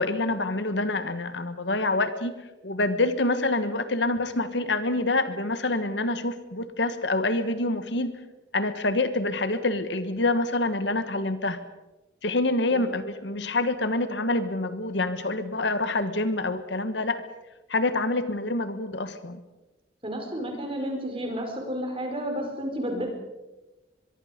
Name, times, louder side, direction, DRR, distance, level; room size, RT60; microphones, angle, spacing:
voice 1, 0.0-8.1 8.5-11.6 12.2-17.2 17.7-19.4, left 2 dB, 65° left, 11 dB, 1.4 m, -26 dB
voice 2, 20.0-23.1, equal, 30° right, 2 dB, 5.0 m, -31 dB
24.0 x 23.0 x 5.2 m, 1.1 s
head